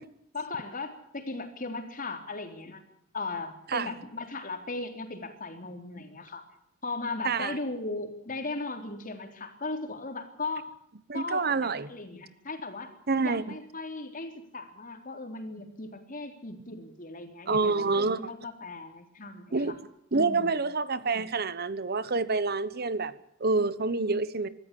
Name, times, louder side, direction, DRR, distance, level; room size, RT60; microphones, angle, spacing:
voice 1, 0.3-2.8 3.1-6.4 6.8-10.7 11.1-12.9 13.2-19.8 20.1-20.6, left 3 dB, 45° left, 3.6 m, -37 dB
voice 2, 7.2-7.6 11.1-11.9 13.1-13.5 17.5-18.2 19.5-19.7 20.1-23.1 23.4-24.5, right 3 dB, 50° right, 1.1 m, -27 dB
24.5 x 14.0 x 8.4 m
head